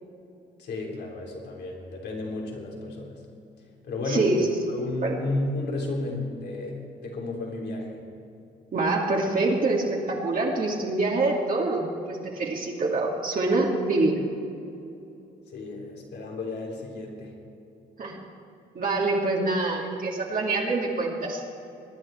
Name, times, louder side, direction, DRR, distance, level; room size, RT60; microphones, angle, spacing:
voice 1, 0.6-3.2 3.8-8.0 15.5-17.3, left 2 dB, 65° left, -1 dB, 3.7 m, -32 dB
voice 2, 4.0-5.2 8.7-14.2 18.0-18.2 18.7-21.4, right 2 dB, 50° right, -2 dB, 2.6 m, -25 dB
22.0 x 10.0 x 4.5 m, 2.8 s
cardioid pair, 75°, 19 cm